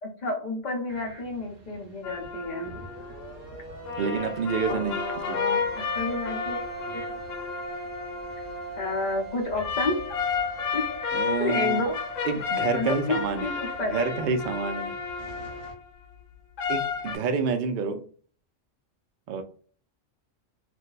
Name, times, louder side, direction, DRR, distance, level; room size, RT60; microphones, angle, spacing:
voice 1, 0.0-2.7 4.7-6.6 6.9-7.1 8.8-10.0 10.7-10.8 11.4-12.0 12.7-14.1, left 2 dB, 40° left, 0 dB, 0.9 m, -30 dB
sound 1, 0.9-15.7, right 4 dB, 45° right, 1.1 m, -42 dB
sound 2, 2.0-3.3 3.9-8.9 9.6-15.8 16.6-17.2, left 6 dB, 80° left, 1.0 m, -32 dB
voice 2, 4.0-5.0 5.3-5.4 11.1-11.8 12.2-13.5 13.9-14.9 16.7-18.0 19.3-19.4, right 5 dB, 60° right, 6 dB, 0.5 m, -28 dB
2.5 x 2.2 x 3.9 m, 0.43 s
omnidirectional pair, 1.3 m